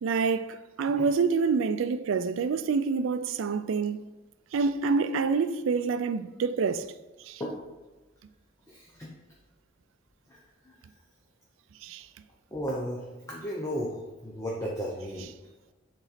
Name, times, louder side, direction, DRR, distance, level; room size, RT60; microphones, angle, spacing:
voice 1, 0.0-4.1 4.5-6.9 7.3-7.4 11.8-12.1, right 5 dB, 70° right, 0.4 m, -27 dB
voice 2, 8.7-9.1 10.6-10.8 12.5-15.3, equal, 15° left, 0.8 m, -34 dB
7.0 x 4.0 x 4.2 m
head